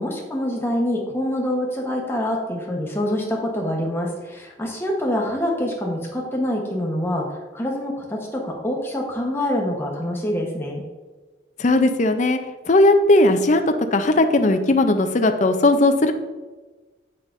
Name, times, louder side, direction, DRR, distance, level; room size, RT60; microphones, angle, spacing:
voice 1, 0.0-10.8, left 1 dB, 15° left, -1 dB, 1.0 m, -25 dB
voice 2, 11.6-12.4 12.7-13.6 13.9-16.1, left 2 dB, 40° left, 7 dB, 0.5 m, -17 dB
8.1 x 5.7 x 2.6 m, 1.3 s
head